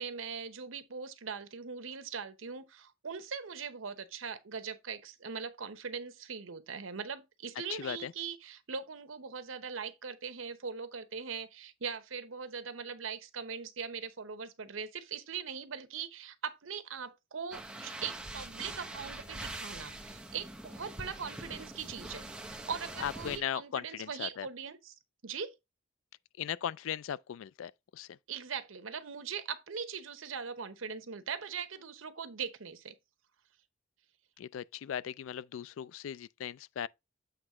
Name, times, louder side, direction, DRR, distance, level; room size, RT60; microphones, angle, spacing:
voice 1, 0.0-25.0 25.2-25.5 28.3-32.9, right 6 dB, 85° right, 0.9 m, -41 dB
voice 2, 7.7-8.1 23.0-24.5 26.4-28.2 34.4-36.9, left 9 dB, 80° left, 0.3 m, -38 dB
sound 1, 17.5-23.4, right 2 dB, 5° right, 0.7 m, -44 dB
7.9 x 3.1 x 4.8 m
head